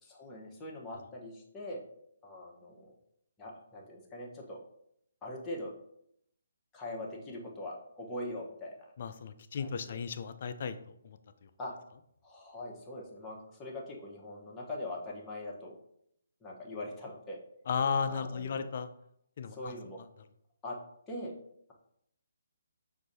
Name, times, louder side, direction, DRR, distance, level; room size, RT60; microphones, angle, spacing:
voice 1, 0.0-1.8 2.2-2.9 3.4-4.6 5.2-5.7 6.7-8.9 9.6-9.7 11.6-11.7 12.2-15.7 16.4-17.4 18.0-18.6 19.5-20.0 20.6-20.8 21.1-21.3, left 1 dB, 15° left, -3 dB, 0.8 m, -42 dB
voice 2, 9.0-11.2 17.7-18.9 19.4-19.7, left 6 dB, 45° left, 10 dB, 0.4 m, -34 dB
6.0 x 2.6 x 2.6 m, 0.74 s
figure-of-eight pair, 140°, 0 cm